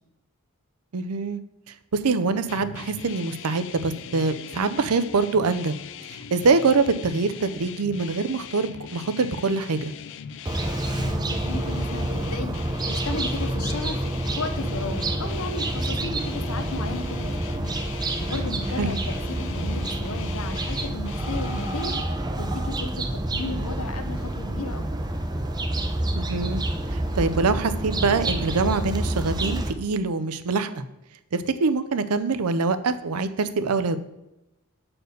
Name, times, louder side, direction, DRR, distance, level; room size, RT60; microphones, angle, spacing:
voice 1, 0.9-1.4 1.7-5.8 6.3-9.9 18.8-19.0 26.1-26.6 26.9-30.8 31.3-34.0, right 4 dB, 85° right, 11 dB, 0.6 m, -24 dB
sound 1, 2.5-22.0, left 7 dB, 55° left, 0.3 m, -40 dB
sound 2, 10.5-29.7, right 1 dB, 20° right, 0.5 m, -28 dB
voice 2, 10.8-12.6 12.9-14.0 14.4-17.6 18.2-21.9 22.4-24.9, left 2 dB, 75° left, 8 dB, 0.8 m, -34 dB
6.6 x 4.4 x 6.5 m, 0.94 s
head